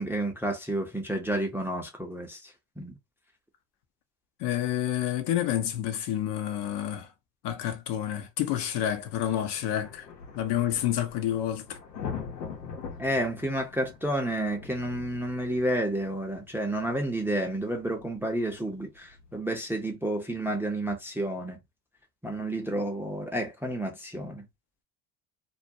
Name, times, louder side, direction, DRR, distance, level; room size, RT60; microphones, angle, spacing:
voice 1, 0.0-3.0 13.0-21.6 22.2-24.5, right 1 dB, 5° right, 0.5 m, -30 dB
voice 2, 4.4-7.1 7.4-10.1 10.3-11.8, left 11 dB, 55° left, 0.7 m, -29 dB
sound 1, 8.7-19.4, left 6 dB, 90° left, 1.0 m, -43 dB
2.4 x 2.2 x 2.6 m
hypercardioid pair, 75°, 49 cm